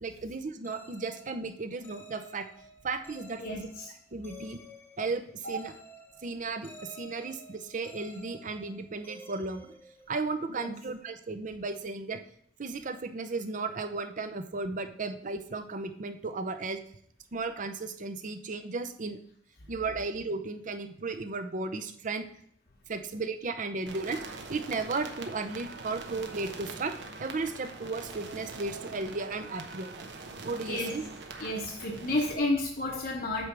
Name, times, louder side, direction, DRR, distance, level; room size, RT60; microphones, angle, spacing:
voice 1, 0.0-2.5 2.8-3.7 4.1-4.6 5.0-5.7 6.2-9.7 10.1-12.2 12.6-16.8 17.3-19.2 19.7-22.2 22.9-30.1 30.4-31.0, right 3 dB, 45° right, 9 dB, 0.7 m, -35 dB
sound 1, 0.6-10.5, right 1 dB, 10° left, 1.0 m, -52 dB
voice 2, 3.4-3.9 5.4-5.5 10.5-10.7 30.7-30.9 31.4-33.5, left 2 dB, 55° left, -1 dB, 1.0 m, -31 dB
sound 2, 23.9-32.4, right 3 dB, 75° right, 0.9 m, -43 dB
8.2 x 3.4 x 6.0 m, 0.64 s
head